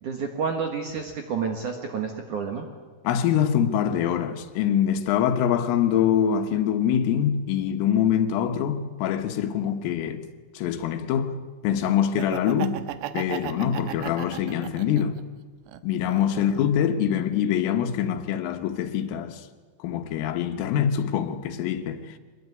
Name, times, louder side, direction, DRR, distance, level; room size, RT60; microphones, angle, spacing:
voice 1, 0.0-2.7 16.3-16.4, right 6 dB, 60° right, 2.2 m, -30 dB
voice 2, 3.1-10.2 10.6-11.3 11.6-12.8 13.1-15.2 15.8-19.5 19.8-22.2, left 9 dB, 85° left, 3.9 m, -24 dB
Laughter, 12.0-15.2 15.7-16.8, right 12 dB, 75° right, 2.8 m, -35 dB
24.0 x 20.5 x 9.6 m
omnidirectional pair, 5.7 m